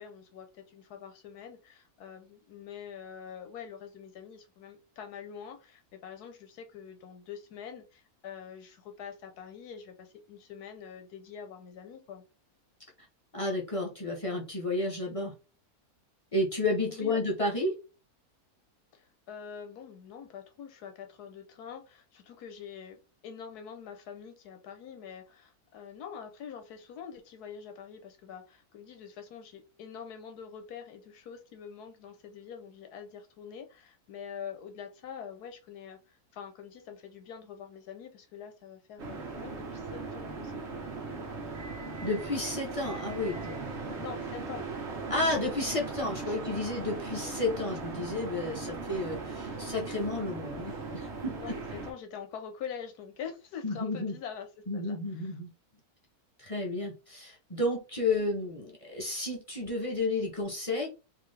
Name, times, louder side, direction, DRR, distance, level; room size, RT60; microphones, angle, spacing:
voice 1, 0.0-12.2 16.9-17.2 18.9-41.3 44.0-44.7 46.2-46.4 51.4-54.5 54.7-55.0, left 7 dB, 85° left, 6 dB, 1.3 m, -45 dB
voice 2, 13.3-15.3 16.3-17.7 42.0-44.0 45.1-51.8 53.6-54.2 54.7-55.5 56.4-60.9, left 2 dB, 30° left, -1 dB, 0.6 m, -32 dB
sound 1, 39.0-51.9, right 3 dB, 50° right, 1.1 m, -38 dB
3.8 x 2.7 x 3.3 m, 0.31 s
omnidirectional pair, 1.6 m